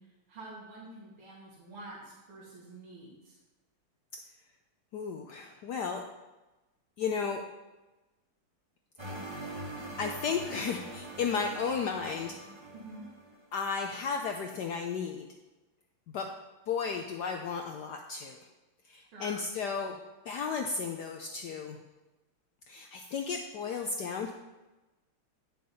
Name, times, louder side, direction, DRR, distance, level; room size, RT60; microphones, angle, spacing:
voice 1, 0.3-3.4 12.7-13.0 19.1-19.4, right 2 dB, 80° right, -6 dB, 2.9 m, -47 dB
voice 2, 4.9-6.0 7.0-7.4 9.0-9.1 10.0-12.4 13.5-15.3 16.1-16.3 16.7-18.4 18.8-20.0 20.2-21.8 22.7-24.3, left 5 dB, 75° left, 3 dB, 1.0 m, -34 dB
sound 1, 9.0-13.4, right 1 dB, 20° right, 0.7 m, -43 dB
9.3 x 6.6 x 4.0 m, 1.1 s
omnidirectional pair, 2.4 m